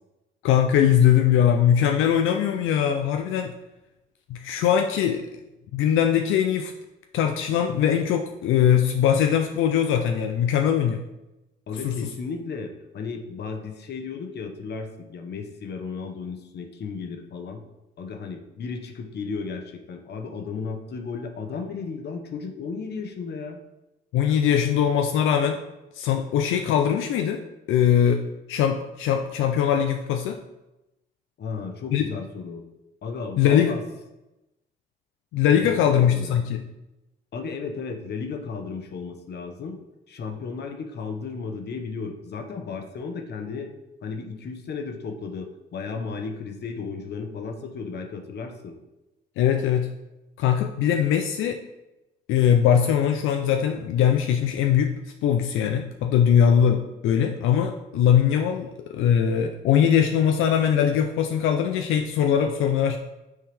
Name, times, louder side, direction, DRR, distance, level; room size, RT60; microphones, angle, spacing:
voice 1, 0.4-3.5 4.3-5.3 5.7-6.7 7.1-11.0 11.8-12.1 24.1-25.6 25.9-27.4 27.7-30.4 31.9-32.1 33.4-33.7 35.3-36.6 49.4-49.9 50.4-51.6 52.3-54.9 55.2-63.0, left 9 dB, 85° left, 5 dB, 0.5 m, -21 dB
voice 2, 11.7-17.6 18.0-23.6 31.4-32.6 33.0-33.8 35.6-36.4 37.3-39.8 40.1-43.7 44.0-48.7, left 5 dB, 55° left, 4 dB, 1.0 m, -34 dB
9.5 x 3.6 x 3.4 m, 0.97 s
cardioid pair, 90°, 20 cm